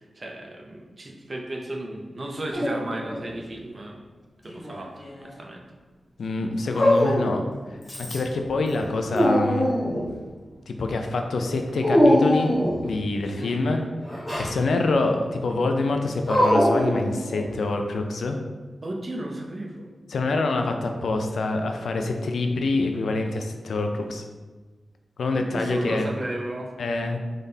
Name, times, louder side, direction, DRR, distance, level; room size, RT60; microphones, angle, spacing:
voice 1, 0.2-4.0 4.4-4.9 5.4-5.6 13.4-13.8 18.8-19.9 25.5-26.7, right 1 dB, 35° right, 1 dB, 0.5 m, -34 dB
Dog, 2.5-3.4 4.4-5.3 6.7-7.5 7.9-8.4 8.8-10.1 11.8-12.9 14.1-14.5 16.3-17.6, equal, 25° left, 0.9 m, -22 dB
voice 2, 6.2-7.4 8.0-9.7 10.7-12.5 12.8-13.8 14.4-18.4 20.1-24.2 25.2-26.1 26.8-27.2, left 3 dB, 80° left, 4 dB, 0.4 m, -26 dB
3.8 x 3.4 x 2.7 m, 1.3 s
wide cardioid pair, 145°, 0 cm